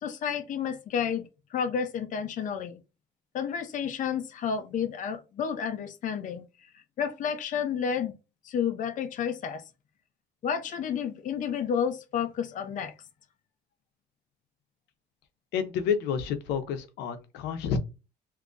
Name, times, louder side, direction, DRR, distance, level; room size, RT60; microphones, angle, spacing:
voice 1, 0.0-2.8 3.3-6.4 7.0-8.1 8.4-9.6 10.4-12.9, left 7 dB, 50° left, 0.6 m, -31 dB
voice 2, 15.5-17.8, left 7 dB, 90° left, 0.7 m, -29 dB
3.6 x 2.7 x 2.5 m
cardioid pair, 110°, 17 cm